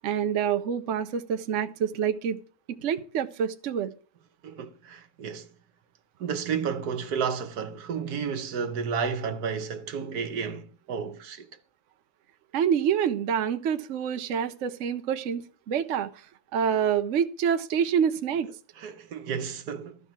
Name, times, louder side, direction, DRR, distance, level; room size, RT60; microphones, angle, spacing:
voice 1, 0.0-2.4 2.8-3.9 12.5-15.4 15.7-16.3 16.5-18.5, right 8 dB, 60° right, 0.9 m, -27 dB
voice 2, 4.4-5.5 6.2-11.5 18.8-20.0, right 6 dB, 80° right, 1.5 m, -32 dB
13.5 x 4.5 x 7.3 m
omnidirectional pair, 1.6 m